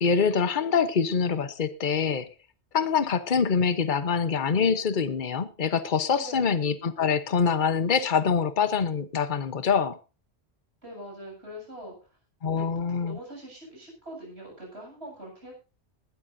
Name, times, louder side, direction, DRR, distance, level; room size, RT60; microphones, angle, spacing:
voice 1, 0.0-2.3 2.7-10.0 12.4-13.2, left 6 dB, 45° left, 13 dB, 1.2 m, -25 dB
voice 2, 6.1-6.5 10.8-12.1 12.5-15.5, equal, 70° right, 0 dB, 8.2 m, -43 dB
19.5 x 13.0 x 2.7 m, 0.32 s
omnidirectional pair, 1.1 m